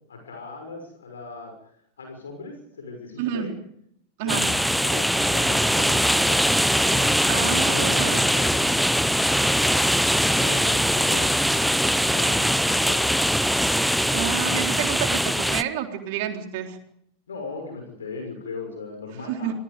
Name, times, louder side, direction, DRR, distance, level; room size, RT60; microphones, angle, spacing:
voice 1, 0.1-1.7 2.0-3.5 4.2-6.5 6.7-8.8 10.3-13.1 17.3-19.5, left 3 dB, 70° left, 3 dB, 6.3 m, -39 dB
voice 2, 3.2-3.5 4.2-4.5 7.3-8.4 14.1-16.8 19.3-19.5, right 9 dB, 50° right, 4 dB, 3.8 m, -29 dB
sound 1, 4.3-15.6, equal, ahead, 0.8 m, -21 dB
26.5 x 21.0 x 5.2 m, 0.72 s
figure-of-eight pair, 90°, 0 cm